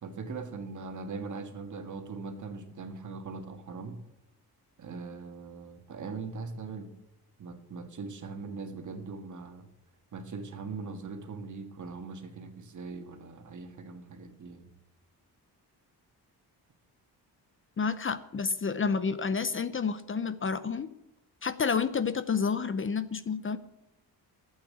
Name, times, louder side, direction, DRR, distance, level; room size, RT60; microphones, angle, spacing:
voice 1, 0.0-4.0 4.8-6.9 7.4-9.7 10.1-14.7, right 4 dB, 50° right, 6 dB, 2.0 m, -40 dB
voice 2, 17.8-20.9 21.4-23.6, left 5 dB, 30° left, 13 dB, 0.6 m, -29 dB
12.0 x 8.8 x 8.5 m, 0.89 s
wide cardioid pair, 150°, 39 cm